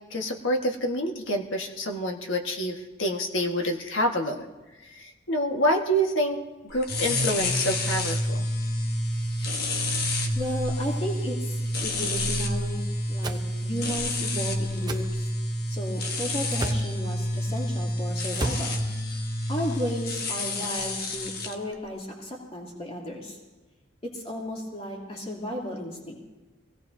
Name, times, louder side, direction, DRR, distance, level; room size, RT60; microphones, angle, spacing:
voice 1, 0.1-4.5 4.9-6.4 6.7-8.5, equal, 80° left, 2 dB, 1.6 m, -27 dB
sound 1, 6.8-21.5, left 1 dB, 55° left, 1.2 m, -29 dB
voice 2, 10.3-15.3 15.7-18.8 19.5-23.4 24.0-26.1, equal, 30° left, -3 dB, 2.9 m, -34 dB
sound 2, 13.2-13.4 14.9-15.1 16.5-16.9 18.3-18.7, right 1 dB, 20° right, 0.7 m, -31 dB
23.5 x 17.0 x 2.7 m, 1.2 s
head